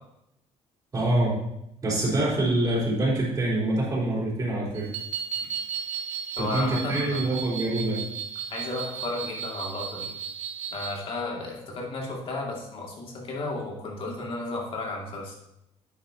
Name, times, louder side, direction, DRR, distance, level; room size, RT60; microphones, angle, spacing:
voice 1, 0.9-1.3 1.8-4.9 6.4-8.0, right 1 dB, 30° right, -5 dB, 3.9 m, -25 dB
sound 1, 4.7-11.0, right 8 dB, 75° right, 2.5 m, -35 dB
voice 2, 6.4-7.3 8.5-10.1 10.7-15.3, left 2 dB, 45° left, -1 dB, 2.5 m, -33 dB
9.9 x 9.0 x 2.9 m, 0.83 s
cardioid pair, 140°, 12 cm